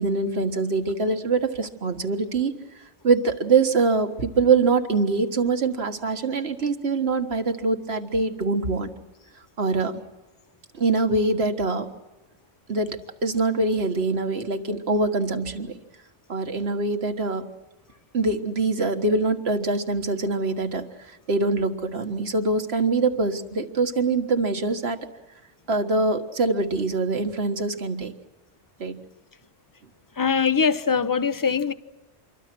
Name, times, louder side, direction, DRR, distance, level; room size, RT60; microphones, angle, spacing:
voice 1, 0.0-2.5 3.0-8.9 9.6-10.0 10.7-11.9 12.7-15.8 16.3-17.5 18.1-25.0 25.7-28.1 28.8-29.0, right 3 dB, 65° right, 1.9 m, -24 dB
voice 2, 30.2-31.7, left 6 dB, 20° left, 0.7 m, -22 dB
27.0 x 23.0 x 6.1 m
omnidirectional pair, 1.2 m